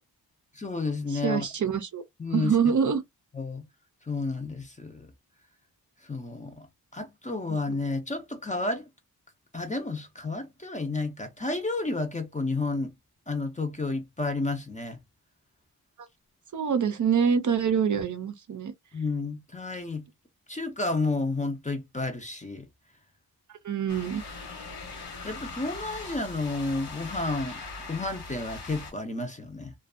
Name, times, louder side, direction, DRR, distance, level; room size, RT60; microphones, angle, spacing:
voice 1, 0.5-1.5 2.2-2.5 3.3-3.6 4.1-5.1 6.0-6.7 6.9-8.9 9.5-12.9 13.3-15.0 18.9-20.0 20.5-22.7 25.2-27.6 27.9-29.7, left 3 dB, 20° left, 0.4 m, -31 dB
voice 2, 1.1-2.0 2.3-3.0 7.5-7.6 16.5-18.7 23.6-24.2, right 7 dB, 50° right, 0.5 m, -25 dB
sound 1, 23.9-28.9, left 3 dB, 80° left, 1.1 m, -40 dB
2.5 x 2.2 x 2.4 m
wide cardioid pair, 140°, 39 cm